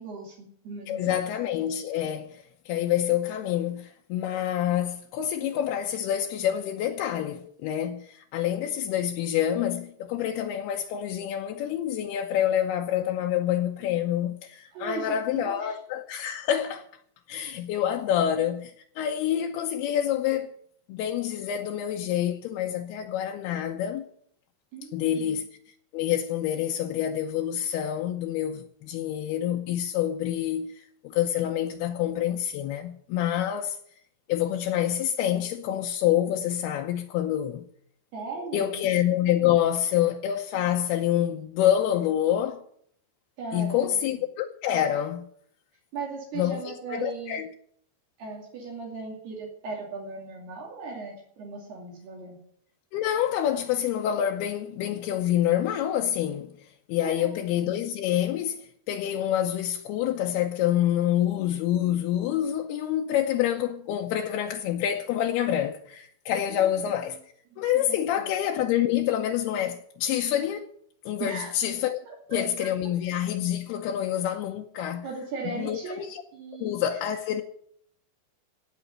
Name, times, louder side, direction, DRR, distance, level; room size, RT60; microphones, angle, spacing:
voice 1, 0.0-1.3 14.7-15.8 24.7-25.4 38.1-38.9 43.4-44.2 45.9-47.4 48.2-52.4 57.0-57.3 57.6-57.7 66.5-66.6 67.5-68.3 71.2-71.5 72.1-72.7 75.0-76.1 76.3-76.8, right 3 dB, 65° right, 4.6 m, -38 dB
voice 2, 0.9-16.9 17.3-20.5 20.9-24.1 24.9-25.5 25.9-33.8 34.3-37.7 38.5-42.6 43.5-45.3 46.4-47.5 52.9-67.2 67.6-70.7 71.1-72.0 72.3-75.1 75.5-76.2 76.6-77.4, left 11 dB, 80° left, 2.6 m, -27 dB
17.0 x 6.2 x 9.6 m
omnidirectional pair, 5.0 m